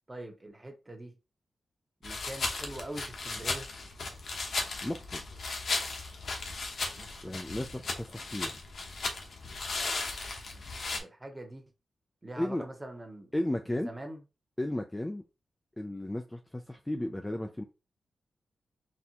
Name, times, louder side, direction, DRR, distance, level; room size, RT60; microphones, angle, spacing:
voice 1, 0.1-1.2 2.0-3.7 6.9-7.4 10.2-10.6 10.9-11.6 12.2-13.3 13.7-14.2, right 1 dB, 15° right, 0.9 m, -44 dB
sound 1, 2.0-11.0, left 3 dB, 60° left, 0.9 m, -36 dB
voice 2, 4.8-5.2 7.2-8.6 12.4-12.7 13.3-13.9 14.6-15.2 15.8-17.6, left 1 dB, 10° left, 0.3 m, -34 dB
4.1 x 3.4 x 2.9 m
wide cardioid pair, 150°, 0 cm